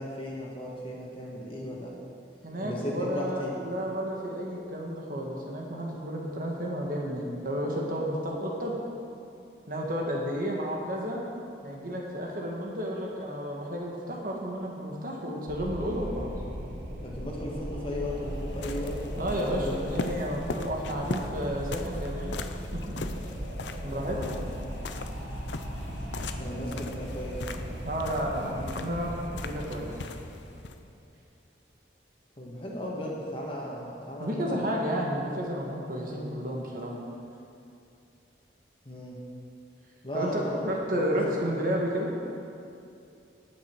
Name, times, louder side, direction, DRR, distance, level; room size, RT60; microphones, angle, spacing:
voice 1, 0.0-1.9 2.6-3.6 17.0-19.8 24.1-24.4 26.4-27.4 32.4-34.7 38.8-39.2 40.0-41.3, equal, 30° left, -3 dB, 1.8 m, -36 dB
voice 2, 2.4-8.7 9.7-11.2 11.6-16.3 19.2-22.4 22.7-23.0 23.8-24.4 27.8-29.9 34.2-36.9 40.1-42.1, equal, 50° right, -2 dB, 1.7 m, -32 dB
Wind, 15.5-30.8, equal, 75° right, 2.1 m, -37 dB
sound 1, 17.8-30.8, left 3 dB, 85° left, 0.6 m, -40 dB
18.0 x 6.6 x 4.7 m, 2.5 s
head